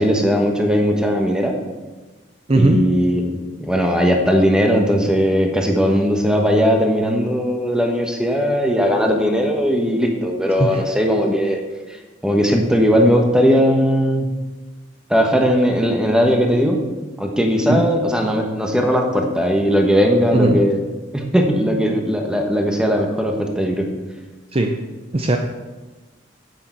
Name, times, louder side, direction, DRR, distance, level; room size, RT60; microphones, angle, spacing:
voice 1, 0.0-1.5 2.5-11.6 11.9-14.3 15.1-16.8 17.2-20.8 21.1-23.9, equal, 5° right, 2 dB, 1.2 m, -18 dB
voice 2, 2.5-2.8 10.6-10.8 17.7-17.8 20.3-20.6 24.5-24.7 25.1-25.4, right 2 dB, 30° right, 3 dB, 0.6 m, -17 dB
9.7 x 8.6 x 4.5 m, 1.2 s
head